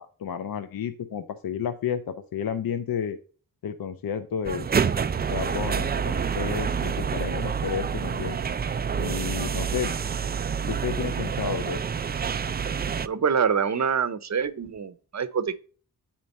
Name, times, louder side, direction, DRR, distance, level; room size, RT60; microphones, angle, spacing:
voice 1, 0.0-3.2 3.6-4.7 5.3-8.4 9.0-9.9 10.7-11.8, left 8 dB, 65° left, 0.6 m, -31 dB
sound 1, 4.4-13.1, right 6 dB, 25° right, 0.3 m, -28 dB
voice 2, 13.0-15.6, right 6 dB, 45° right, 0.8 m, -25 dB
8.7 x 4.4 x 4.1 m
cardioid pair, 50°, 38 cm